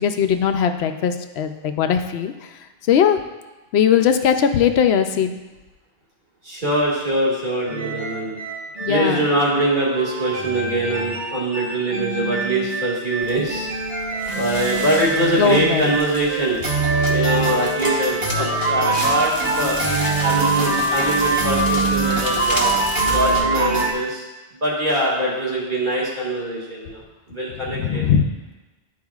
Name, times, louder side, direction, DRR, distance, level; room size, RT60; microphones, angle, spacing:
voice 1, 0.0-2.3 2.9-3.2 3.7-5.4 8.8-9.3 15.4-15.9 27.6-28.3, left 8 dB, 70° left, 7 dB, 0.8 m, -19 dB
voice 2, 6.4-8.4 8.9-13.7 14.3-16.6 17.1-19.8 20.2-22.8 23.0-24.3 24.6-27.0 27.3-28.0, right 1 dB, 45° right, -6 dB, 2.1 m, -23 dB
sound 1, 7.7-23.9, right 3 dB, 60° right, 1.5 m, -23 dB
Crackle, 13.2-23.4, left 1 dB, 20° left, 1.1 m, -32 dB
12.5 x 4.7 x 2.4 m, 1.1 s
omnidirectional pair, 1.1 m